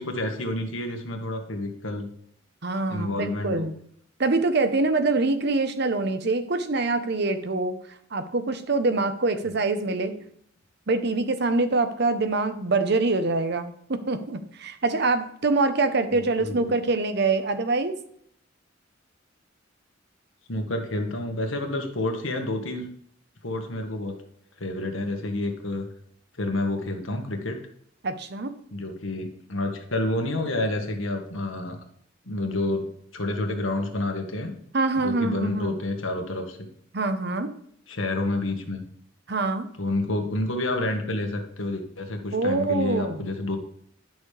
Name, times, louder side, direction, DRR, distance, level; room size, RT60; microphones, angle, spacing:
voice 1, 0.0-2.1 2.9-3.7 10.1-10.3 16.1-16.7 20.5-22.9 23.4-24.2 24.6-25.9 26.4-27.6 28.7-31.8 32.3-32.8 33.1-34.5 35.0-36.7 37.9-38.8 39.8-43.6, left 2 dB, 90° left, 4 dB, 1.6 m, -29 dB
voice 2, 2.6-3.7 4.2-7.8 8.1-10.1 10.9-18.0 28.0-28.5 34.7-35.8 36.9-37.5 39.3-39.7 42.3-43.3, right 3 dB, 55° right, 10 dB, 0.9 m, -25 dB
11.0 x 6.2 x 3.3 m, 0.66 s
head